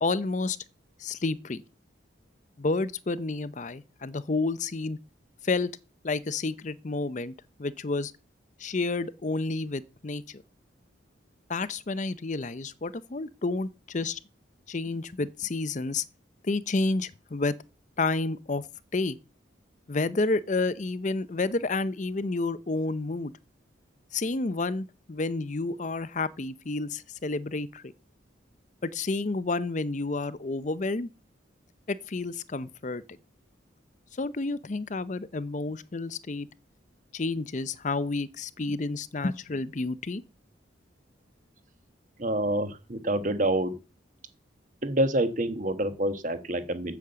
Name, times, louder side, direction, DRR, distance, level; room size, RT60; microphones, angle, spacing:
voice 1, 0.0-0.6 1.0-1.6 2.6-5.0 5.4-5.7 6.0-7.3 7.6-8.1 8.6-10.4 11.5-14.2 14.7-16.0 16.4-17.5 18.0-18.7 18.9-19.2 19.9-23.3 24.1-27.9 28.8-31.1 31.9-33.2 34.1-36.5 37.1-40.2, left 3 dB, 40° left, 0.6 m, -30 dB
voice 2, 42.2-43.8 44.8-46.9, right 1 dB, 40° right, 1.3 m, -27 dB
8.3 x 7.2 x 7.9 m
head